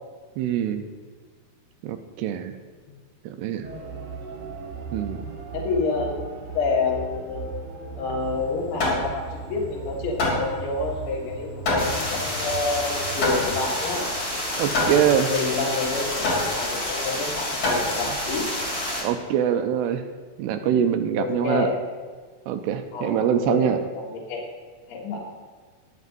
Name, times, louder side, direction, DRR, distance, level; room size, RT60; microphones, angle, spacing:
voice 1, 0.4-0.8 1.8-2.5 3.3-3.7 4.9-5.3 14.6-15.3 19.0-20.0 20.4-21.7 22.5-23.8, right 9 dB, 80° right, 7 dB, 2.6 m, -24 dB
sound 1, 3.6-13.6, right 4 dB, 55° right, 2.0 m, -37 dB
voice 2, 5.5-7.6 8.0-14.1 15.2-18.5 20.6-20.8 21.1-21.8 22.9-24.4 24.9-25.2, left 3 dB, 80° left, -5 dB, 3.6 m, -28 dB
Hammer, 8.2-18.4, left 2 dB, 45° left, 4.2 m, -28 dB
sound 2, 11.8-19.0, left 1 dB, 10° left, 2.5 m, -29 dB
22.0 x 8.1 x 2.6 m, 1.5 s
omnidirectional pair, 4.6 m